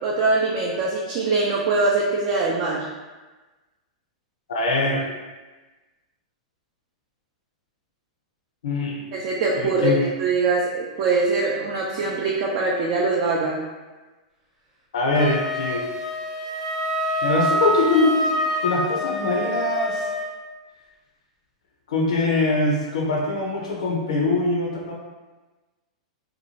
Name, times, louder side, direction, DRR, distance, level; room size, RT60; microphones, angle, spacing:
voice 1, 0.0-2.9 9.1-13.6, right 3 dB, 50° right, -3 dB, 0.4 m, -23 dB
voice 2, 4.5-5.0 8.6-9.1 9.6-10.0 14.9-15.9 17.2-20.1 21.9-24.9, left 2 dB, 75° left, -1 dB, 0.5 m, -23 dB
Wind instrument woodwind instrument, 15.1-20.3, equal, 20° right, 0.9 m, -26 dB
2.8 x 2.2 x 2.7 m, 1.2 s
hypercardioid pair, 110°, 4 cm